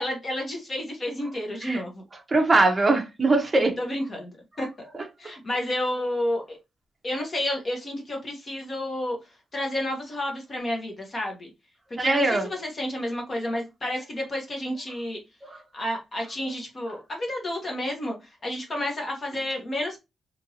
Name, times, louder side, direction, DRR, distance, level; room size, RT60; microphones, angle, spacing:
voice 1, 0.0-2.0 3.8-4.7 5.2-6.6 7.0-9.2 9.5-11.5 12.0-15.2 15.7-18.2 18.4-20.0, left 1 dB, 30° left, 0.8 m, -30 dB
voice 2, 2.3-3.7 12.0-12.5, right 2 dB, 20° right, 0.6 m, -21 dB
2.9 x 2.5 x 2.7 m
wide cardioid pair, 155°, 0 cm